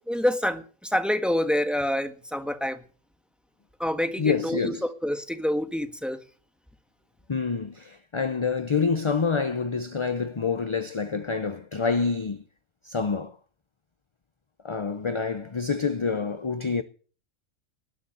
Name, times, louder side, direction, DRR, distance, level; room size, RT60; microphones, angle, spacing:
voice 1, 0.1-2.8 3.8-4.8 5.0-6.2, left 1 dB, ahead, 1.4 m, -27 dB
voice 2, 4.2-4.9 7.3-12.4 12.8-13.4 14.6-16.8, left 5 dB, 30° left, 0.6 m, -27 dB
19.5 x 6.9 x 9.0 m
omnidirectional pair, 1.4 m